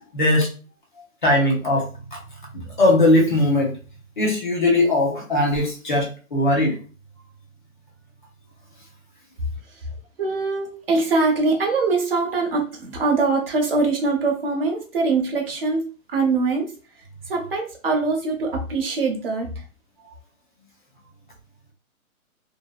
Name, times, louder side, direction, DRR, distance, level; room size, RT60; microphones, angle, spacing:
voice 1, 0.1-0.5 1.2-1.9 2.8-3.7 4.2-6.8, left 1 dB, 35° left, -1 dB, 0.6 m, -19 dB
voice 2, 10.2-15.8 16.1-16.7 17.3-19.5, right 3 dB, 40° right, 1 dB, 0.7 m, -22 dB
2.7 x 2.0 x 2.3 m, 0.36 s
hypercardioid pair, 170°, 42 cm